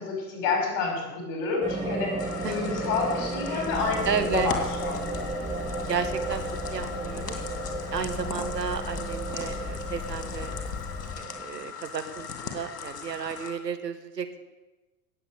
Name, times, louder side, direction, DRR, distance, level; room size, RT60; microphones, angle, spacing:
voice 1, 0.0-2.1 2.4-5.1, left 4 dB, 45° left, 2 dB, 5.4 m, -29 dB
sound 1, 1.6-11.4, right 3 dB, 15° right, 3.6 m, -34 dB
sound 2, 2.2-13.5, left 6 dB, 70° left, 2.4 m, -39 dB
Bird, 3.6-11.2, left 4 dB, 20° left, 1.3 m, -38 dB
voice 2, 4.0-4.5 5.9-6.4 6.7-7.4 7.9-10.5 11.2-12.3 12.5-14.4, right 6 dB, 80° right, 8 dB, 1.6 m, -32 dB
18.0 x 7.7 x 6.9 m, 1.1 s
figure-of-eight pair, 85°, 49 cm